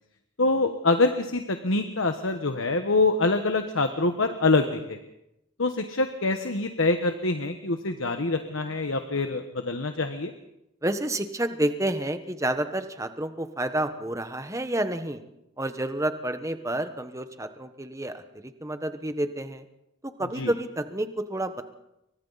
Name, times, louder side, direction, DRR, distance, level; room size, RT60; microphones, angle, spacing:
voice 1, 0.4-5.0 5.6-10.3 20.3-20.5, left 3 dB, 75° left, 6 dB, 1.3 m, -25 dB
voice 2, 10.8-15.2 15.6-19.6 20.0-21.6, right 1 dB, 15° right, 8 dB, 1.2 m, -29 dB
29.0 x 24.0 x 4.1 m, 0.87 s
head